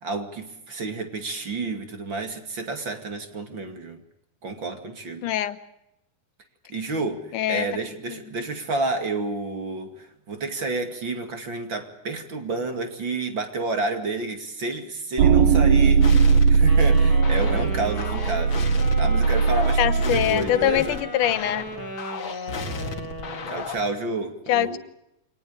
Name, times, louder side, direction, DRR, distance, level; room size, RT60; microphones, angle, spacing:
voice 1, 0.0-4.0 4.4-5.3 6.7-18.7 19.0-21.0 23.5-24.8, right 3 dB, 40° right, 7 dB, 2.8 m, -30 dB
voice 2, 5.2-5.6 7.3-7.7 19.8-21.7 22.3-22.5 24.5-24.8, left 12 dB, 80° left, 12 dB, 2.7 m, -23 dB
sound 1, 15.2-20.3, right 5 dB, 65° right, 2.9 m, -19 dB
sound 2, 16.0-23.9, left 4 dB, 45° left, 2.3 m, -34 dB
Wind instrument woodwind instrument, 16.7-23.6, equal, 5° left, 4.8 m, -35 dB
25.0 x 19.0 x 8.4 m, 0.83 s
omnidirectional pair, 3.6 m